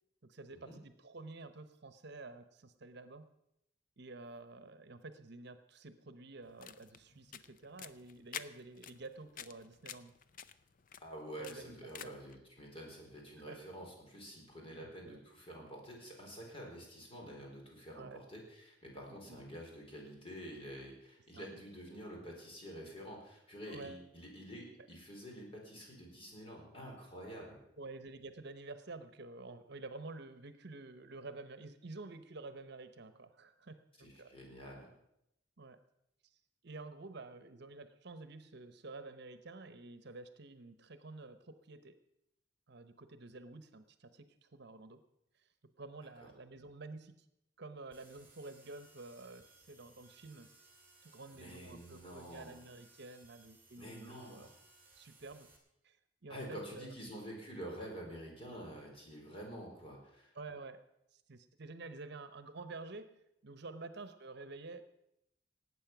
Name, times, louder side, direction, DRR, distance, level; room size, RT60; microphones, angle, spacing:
voice 1, 0.2-3.3 4.0-10.1 11.4-12.1 13.5-13.6 14.8-15.2 18.0-18.2 19.1-19.4 21.3-21.5 23.7-24.0 27.8-34.4 35.6-35.8 36.6-42.0 42.7-45.0 45.8-47.3 47.6-50.5 51.1-54.5 54.9-55.5 55.8-57.1 60.3-60.8 61.1-64.8, right 3 dB, 65° right, 11 dB, 1.0 m, -50 dB
sound 1, 6.4-12.4, left 8 dB, 50° left, 0.6 m, -50 dB
voice 2, 11.0-27.6 34.0-34.9 46.2-46.3 51.3-52.6 53.8-54.5 56.3-60.3, equal, 30° left, -1 dB, 4.2 m, -48 dB
sound 2, 47.9-55.6, right 3 dB, 10° right, 3.0 m, -63 dB
18.5 x 8.5 x 6.0 m, 0.81 s
head